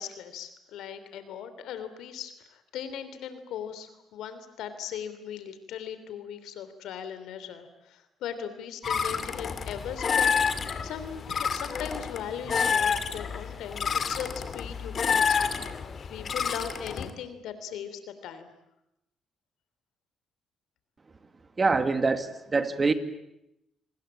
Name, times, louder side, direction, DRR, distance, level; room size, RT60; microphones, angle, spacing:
voice 1, 0.0-15.5 16.1-18.5, left 8 dB, 85° left, 11 dB, 3.2 m, -39 dB
sound 1, 8.8-17.1, left 6 dB, 50° left, 2.4 m, -29 dB
voice 2, 21.6-22.9, right 4 dB, 30° right, 9 dB, 2.2 m, -25 dB
29.0 x 20.5 x 8.8 m, 0.85 s
cardioid pair, 90°, 0 cm